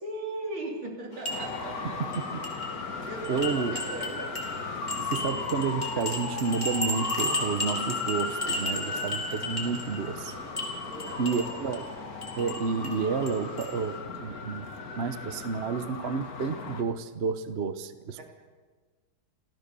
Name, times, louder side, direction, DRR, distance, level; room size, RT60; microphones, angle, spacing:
voice 1, 0.0-2.0 3.0-4.3 8.9-9.4 10.9-11.4, right 2 dB, 80° right, 0 dB, 4.3 m, -38 dB
sound 1, 1.1-14.0, left 1 dB, 20° left, 3.7 m, -36 dB
Traffic noise roadway noise, 1.3-16.8, left 4 dB, 50° left, 2.1 m, -36 dB
voice 2, 2.0-2.4 3.3-3.8 5.0-10.3 11.2-11.9 12.4-14.7 14.9-18.2, right 5 dB, 45° right, 11 dB, 0.9 m, -30 dB
28.0 x 15.0 x 6.9 m, 1.4 s
omnidirectional pair, 2.2 m